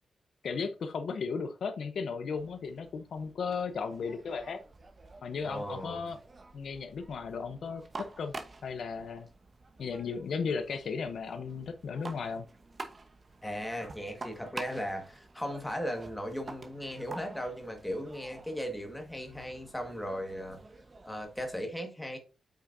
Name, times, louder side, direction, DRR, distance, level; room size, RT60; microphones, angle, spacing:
voice 1, 0.4-4.6 5.2-6.2 6.5-8.3 8.6-9.3 9.8-12.4, left 5 dB, 65° left, 0.7 m, -35 dB
sound 1, 2.4-21.6, right 3 dB, 35° right, 1.0 m, -49 dB
voice 2, 5.4-6.1 13.4-20.6 21.0-22.2, equal, 5° left, 1.6 m, -37 dB
8.4 x 6.2 x 2.6 m
wide cardioid pair, 150°, 0 cm